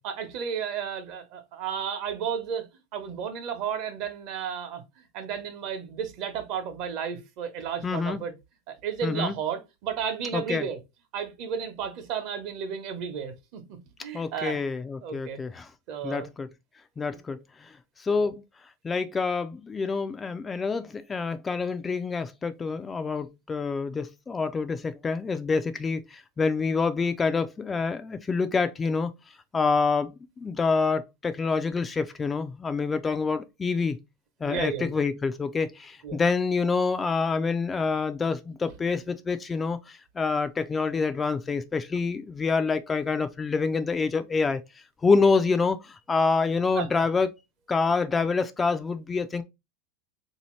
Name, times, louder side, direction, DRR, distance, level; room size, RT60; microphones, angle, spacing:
voice 1, 0.0-4.8 5.1-8.3 8.7-10.8 11.1-13.6 14.0-14.6 15.0-15.4 15.9-16.3 18.1-18.3 34.4-35.0 36.0-36.2 46.7-47.0, right 7 dB, 55° right, 0.9 m, -33 dB
voice 2, 7.8-8.2 9.0-9.3 10.3-10.7 14.1-15.7 16.0-16.5 17.0-17.7 18.0-18.4 18.8-29.1 29.5-34.0 34.4-44.6 45.0-47.3 47.7-49.4, left 4 dB, 20° left, 0.3 m, -27 dB
3.5 x 2.8 x 3.1 m
supercardioid pair, 125°, 0 cm